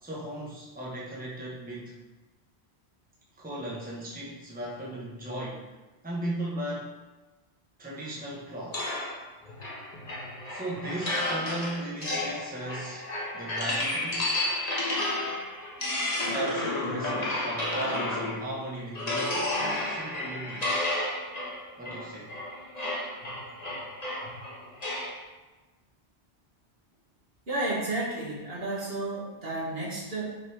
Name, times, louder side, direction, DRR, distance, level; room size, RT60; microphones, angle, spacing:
voice 1, 0.0-2.0 3.4-5.7 6.0-6.9 7.8-8.9 10.5-13.1 13.3-14.3 16.3-20.7 21.8-22.4, right 1 dB, 10° right, -5 dB, 1.2 m, -36 dB
sound 1, 8.7-18.5 19.0-25.2, left 1 dB, 40° left, 1.3 m, -32 dB
voice 2, 27.5-30.4, right 2 dB, 60° right, -5 dB, 1.9 m, -32 dB
6.7 x 4.2 x 4.7 m, 1.2 s
omnidirectional pair, 1.1 m